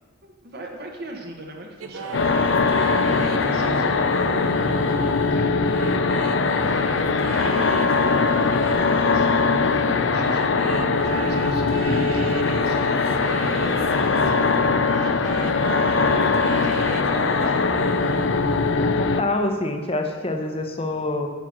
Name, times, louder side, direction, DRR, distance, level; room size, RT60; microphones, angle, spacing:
voice 1, 0.2-2.2 2.8-9.3 9.8-13.0 13.5-17.6, right 1 dB, 45° right, 2 dB, 1.2 m, -38 dB
sound 1, 1.8-14.6 14.8-18.3, right 4 dB, 75° right, 0.7 m, -35 dB
sound 2, 2.1-19.2, left 4 dB, 60° left, 0.5 m, -21 dB
voice 2, 18.7-21.3, left 2 dB, 25° left, 4 dB, 0.9 m, -26 dB
9.3 x 5.8 x 6.2 m, 1.5 s
head